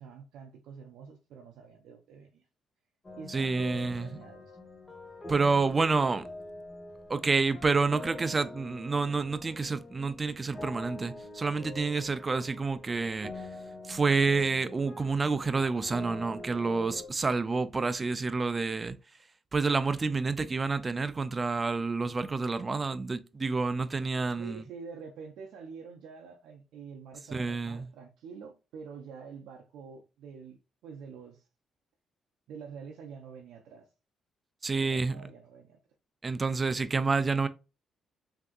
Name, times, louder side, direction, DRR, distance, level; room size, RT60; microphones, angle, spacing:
voice 1, 0.0-2.4 3.1-4.4 24.4-30.6 30.8-31.4 32.5-33.9 34.8-35.8, right 6 dB, 85° right, 0.5 m, -46 dB
sound 1, 3.0-17.1, left 2 dB, 25° left, 0.9 m, -45 dB
voice 2, 3.3-4.1 5.3-6.3 7.1-13.3 13.9-19.0 19.5-24.6 27.3-27.9 34.6-35.2 36.2-37.5, right 4 dB, 30° right, 0.4 m, -28 dB
3.4 x 2.7 x 2.3 m
cardioid pair, 90°, 0 cm